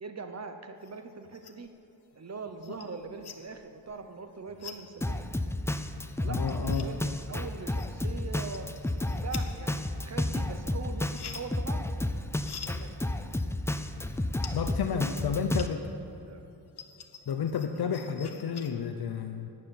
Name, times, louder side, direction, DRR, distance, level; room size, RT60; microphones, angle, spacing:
voice 1, 0.0-1.7 2.2-5.2 6.2-8.7 9.1-11.9 12.7-13.3 14.4-15.8 16.3-16.4, right 4 dB, 40° right, 7 dB, 0.9 m, -42 dB
sound 1, 0.8-1.8 2.1-16.0 16.4-18.7, left 7 dB, 90° left, 1.1 m, -48 dB
Drum kit, 5.0-15.7, left 1 dB, 5° left, 0.5 m, -32 dB
voice 2, 6.3-6.9 14.5-15.9 17.3-19.5, left 7 dB, 70° left, 6 dB, 0.8 m, -31 dB
12.0 x 9.6 x 8.7 m, 2.9 s
wide cardioid pair, 125°, 38 cm